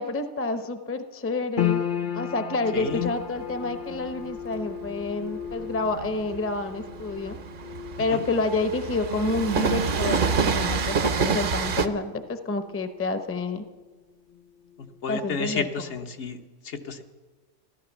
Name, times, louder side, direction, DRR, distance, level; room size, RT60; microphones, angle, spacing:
voice 1, 0.0-1.8 2.1-7.4 8.0-13.6 15.1-15.9, left 3 dB, 15° left, 9 dB, 0.6 m, -29 dB
sound 1, 1.6-14.0 14.2-15.2 15.6-15.7, left 10 dB, 50° left, 0.8 m, -36 dB
voice 2, 2.7-3.1 8.1-8.2 14.8-16.4 16.6-17.0, left 5 dB, 75° left, 5 dB, 1.3 m, -31 dB
Train, 2.8-11.9, right 5 dB, 50° right, 0.8 m, -28 dB
15.0 x 11.5 x 7.1 m, 1.3 s
omnidirectional pair, 1.2 m